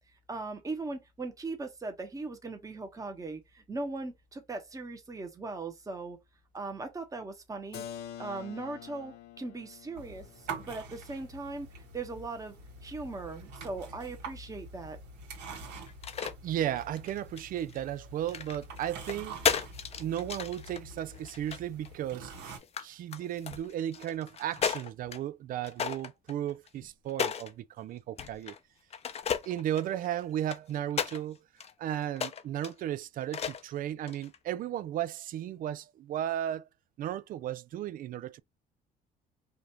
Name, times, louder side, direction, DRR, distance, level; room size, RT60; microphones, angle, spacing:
voice 1, 0.3-6.2 6.5-7.8 8.2-12.6 12.8-15.0, right 3 dB, 20° right, 1.1 m, -39 dB
Keyboard (musical), 7.7-13.3, left 10 dB, 70° left, 0.8 m, -48 dB
sound 1, 10.0-22.6, right 3 dB, 85° right, 1.7 m, -46 dB
sound 2, 15.9-16.3 16.8-17.8 18.3-21.9 22.3-22.8 23.1-25.2 25.6-27.5 28.2-28.6 28.9-31.2 31.6-31.7 32.1-32.7 33.3-33.7 34.1-34.4, left 7 dB, 40° left, 0.6 m, -34 dB
voice 2, 16.4-19.3 20.0-22.3 22.8-28.5 29.5-31.4 31.8-36.6 37.0-38.4, right 11 dB, 55° right, 0.4 m, -35 dB
5.0 x 2.5 x 2.9 m
cardioid pair, 110°, 17 cm